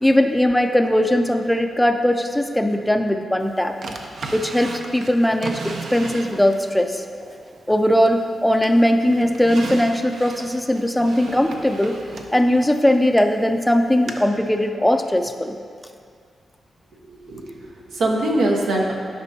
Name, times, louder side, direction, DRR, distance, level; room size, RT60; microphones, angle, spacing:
voice 1, 0.0-3.7 4.3-7.0 7.7-12.0 12.3-15.6, left 1 dB, 5° left, 6 dB, 0.3 m, -19 dB
Drawer open or close, 3.8-6.7 7.2-8.3 8.6-13.3 14.1-14.2, right 3 dB, 70° right, 0.6 m, -35 dB
voice 2, 17.1-18.9, right 1 dB, 90° right, -1 dB, 1.0 m, -23 dB
11.0 x 5.2 x 2.7 m, 2.2 s
cardioid pair, 110°, 0 cm